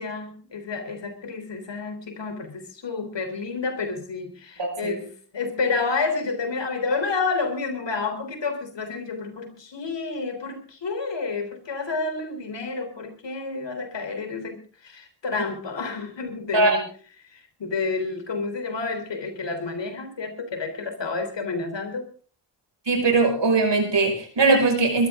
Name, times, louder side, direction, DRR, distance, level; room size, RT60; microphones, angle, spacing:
voice 1, 0.0-16.8 17.3-22.1, left 4 dB, 85° left, 7 dB, 3.5 m, -30 dB
voice 2, 4.6-5.0 16.5-16.8 22.9-25.1, right 3 dB, 80° right, 4 dB, 5.5 m, -20 dB
21.0 x 14.0 x 3.7 m, 0.41 s
cardioid pair, 45°, 42 cm